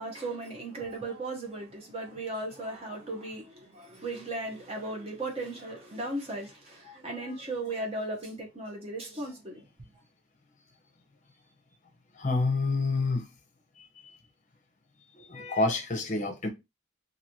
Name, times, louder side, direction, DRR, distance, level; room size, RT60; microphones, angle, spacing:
voice 1, 0.0-9.6, right 2 dB, 30° right, 0.8 m, -36 dB
voice 2, 12.1-13.3 13.8-14.2 15.1-16.5, left 3 dB, 35° left, 0.7 m, -29 dB
2.9 x 2.7 x 2.7 m
head